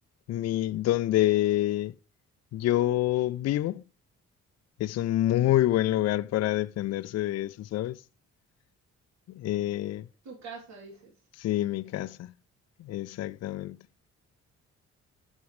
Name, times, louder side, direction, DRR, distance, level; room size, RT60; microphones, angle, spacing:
voice 1, 0.3-1.9 2.5-3.8 4.8-8.0 9.3-10.1 11.4-12.3 12.8-13.8, left 14 dB, 60° left, 0.4 m, -27 dB
voice 2, 10.2-11.3 11.7-12.1, right 4 dB, 65° right, 3.1 m, -46 dB
14.5 x 6.1 x 3.2 m
cardioid pair, 90°, 30 cm